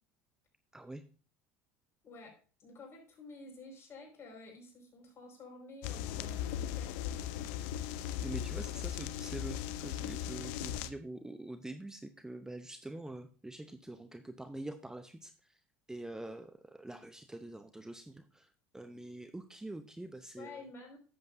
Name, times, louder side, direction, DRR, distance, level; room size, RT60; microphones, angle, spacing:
voice 1, 2.0-7.5 20.4-21.0, left 3 dB, 40° left, 0 dB, 5.3 m, -51 dB
sound 1, 5.8-10.9, left 10 dB, 75° left, 0.6 m, -38 dB
voice 2, 8.2-15.3 15.9-18.5 18.7-20.6, right 1 dB, 10° right, 9 dB, 0.7 m, -45 dB
10.5 x 7.9 x 2.7 m, 0.38 s
hypercardioid pair, 85°, 7 cm